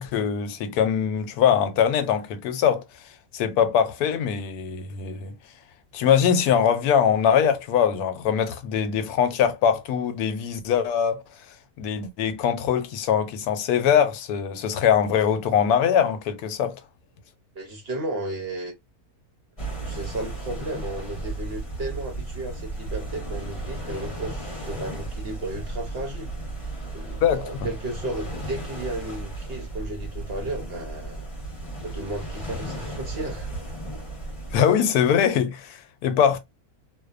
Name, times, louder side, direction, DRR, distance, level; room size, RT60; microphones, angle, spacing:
voice 1, 0.0-2.8 3.3-5.4 5.9-11.2 11.8-16.8 27.2-27.7 34.5-36.4, left 8 dB, 90° left, 1.1 m, -22 dB
voice 2, 17.5-18.7 19.8-26.3 26.9-31.2 31.8-33.5, right 2 dB, 55° right, 0.7 m, -34 dB
sound 1, 19.6-34.6, right 2 dB, 25° left, 0.9 m, -34 dB
2.7 x 2.2 x 2.3 m
omnidirectional pair, 1.6 m